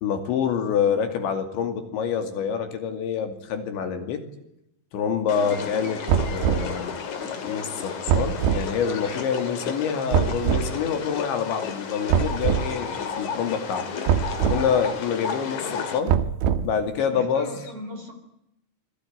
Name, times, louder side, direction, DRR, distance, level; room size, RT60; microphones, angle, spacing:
voice 1, 0.0-4.2 4.9-6.0 6.3-13.9 14.5-16.2 16.6-17.6, left 7 dB, 70° left, 7 dB, 4.8 m, -27 dB
sound 1, 5.3-16.0, left 6 dB, 45° left, 3.4 m, -33 dB
sound 2, 6.1-6.7 8.1-8.7 10.1-10.7 12.1-12.7 14.1-14.6 16.1-16.8, right 8 dB, 75° right, 3.3 m, -22 dB
voice 2, 17.1-18.1, equal, 30° right, 6 dB, 4.5 m, -38 dB
27.0 x 22.0 x 9.5 m, 0.81 s
omnidirectional pair, 5.4 m